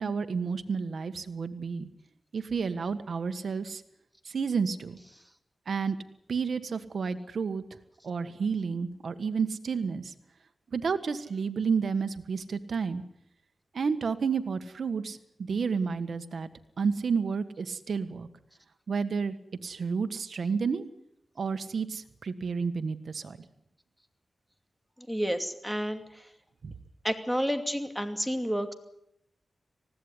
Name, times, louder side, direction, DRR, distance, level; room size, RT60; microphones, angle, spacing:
voice 1, 0.0-1.9 2.3-3.8 4.2-5.0 5.7-6.0 6.3-7.6 8.0-10.1 10.7-13.0 13.7-16.5 16.8-18.3 18.9-19.3 19.6-20.8 21.4-23.4 26.6-26.7, right 5 dB, 75° right, 10 dB, 1.5 m, -30 dB
voice 2, 25.0-26.3 27.0-28.7, equal, ahead, 7 dB, 2.6 m, -30 dB
20.0 x 16.0 x 9.8 m, 0.80 s
cardioid pair, 75°, 0 cm